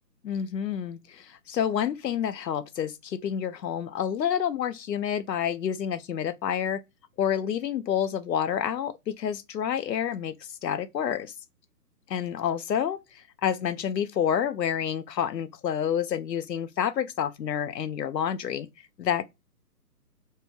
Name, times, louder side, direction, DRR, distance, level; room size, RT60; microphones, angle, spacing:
voice 1, 0.2-6.8 7.2-10.3 10.6-11.3 12.1-18.7 19.0-19.3, left 9 dB, 90° left, 0.6 m, -29 dB
2.7 x 2.2 x 3.3 m
figure-of-eight pair, 145°, 48 cm